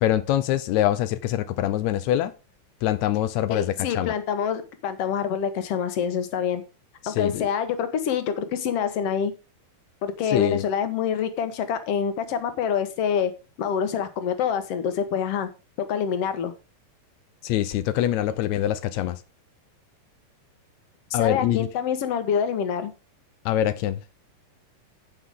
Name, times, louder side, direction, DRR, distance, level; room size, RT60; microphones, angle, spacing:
voice 1, 0.0-2.3 2.8-4.1 7.0-7.5 10.2-10.7 17.4-19.2 21.1-21.7 23.4-24.0, left 12 dB, 85° left, 1.6 m, -24 dB
voice 2, 3.5-6.6 7.1-9.3 10.0-13.3 13.6-15.5 15.9-16.5 21.1-22.9, left 7 dB, 55° left, 1.9 m, -26 dB
16.0 x 5.8 x 3.6 m
omnidirectional pair, 3.9 m